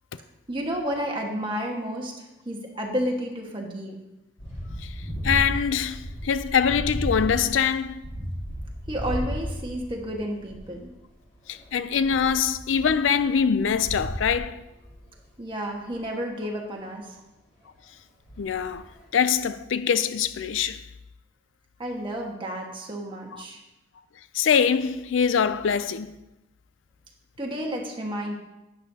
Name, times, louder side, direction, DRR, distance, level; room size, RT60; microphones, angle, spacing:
voice 1, 0.5-4.0 8.9-10.9 15.4-17.0 21.8-23.6 27.4-28.4, equal, 25° right, 1.6 m, -31 dB
sound 1, 4.4-10.8 11.1-15.0 15.9-16.0 18.3-18.8, equal, 40° left, 2.9 m, -34 dB
voice 2, 5.2-8.0 11.5-14.6 18.4-18.9 19.1-20.8 23.3-23.4 24.3-26.2, left 7 dB, 85° left, 0.4 m, -23 dB
11.5 x 9.2 x 2.8 m
head